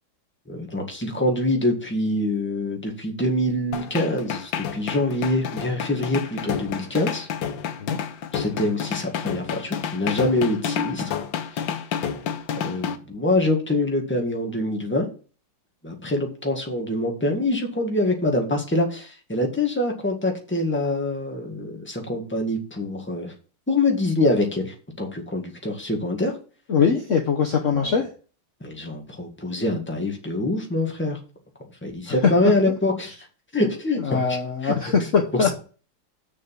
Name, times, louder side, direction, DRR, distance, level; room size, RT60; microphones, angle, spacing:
voice 1, 0.5-7.3 8.3-11.2 11.5-11.7 12.6-15.1 15.8-23.3 23.7-26.3 27.7-28.0 28.6-31.2 31.8-33.1 33.5-34.4 34.6-34.7 35.3-35.5, left 2 dB, 5° left, 2 dB, 1.7 m, -25 dB
sound 1, 3.7-13.0, left 8 dB, 85° left, 1.6 m, -29 dB
voice 2, 26.7-28.0 32.1-32.3 34.0-35.5, left 6 dB, 50° left, 2 dB, 1.2 m, -22 dB
6.6 x 6.5 x 7.4 m, 0.39 s
omnidirectional pair, 2.0 m